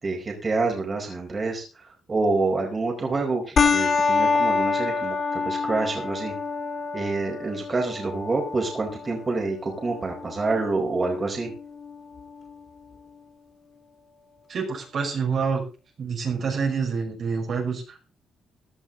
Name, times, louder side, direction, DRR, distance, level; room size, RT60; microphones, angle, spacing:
voice 1, 0.0-6.3 6.9-11.5, right 3 dB, 30° right, 1 dB, 4.6 m, -27 dB
sound 1, 3.6-12.5, left 4 dB, 45° left, 2.1 m, -27 dB
voice 2, 14.5-15.6 16.0-18.0, right 5 dB, 55° right, 1 dB, 5.3 m, -27 dB
16.5 x 11.0 x 3.9 m, 0.34 s
cardioid pair, 90°, 0 cm